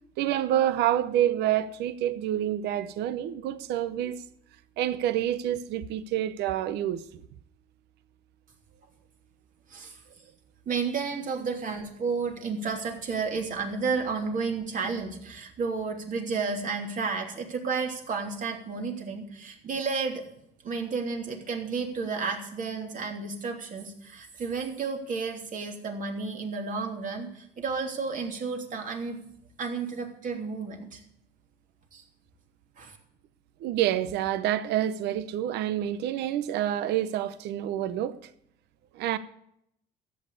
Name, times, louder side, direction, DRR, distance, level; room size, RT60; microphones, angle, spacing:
voice 1, 0.2-4.2 4.8-7.0 33.6-38.2 38.9-39.2, right 11 dB, 80° right, 0.8 m, -27 dB
voice 2, 9.7-10.0 10.6-20.2 20.6-29.2 29.6-31.0 31.9-32.0 32.8-33.0, right 4 dB, 50° right, 3.2 m, -32 dB
13.5 x 9.0 x 8.3 m
cardioid pair, 110°, 17 cm